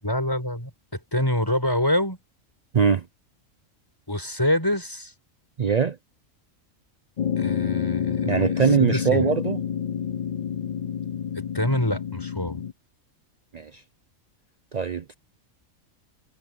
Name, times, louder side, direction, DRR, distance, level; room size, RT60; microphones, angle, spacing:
voice 1, 0.0-2.2 4.1-5.1 7.4-9.3 11.5-12.6, left 1 dB, 15° left, 6.1 m, -26 dB
voice 2, 2.7-3.1 5.6-6.0 8.2-9.6 13.5-13.8 14.7-15.1, right 6 dB, 70° right, 0.4 m, -22 dB
sound 1, 7.2-12.7, left 8 dB, 65° left, 0.4 m, -28 dB
omnidirectional pair, 1.4 m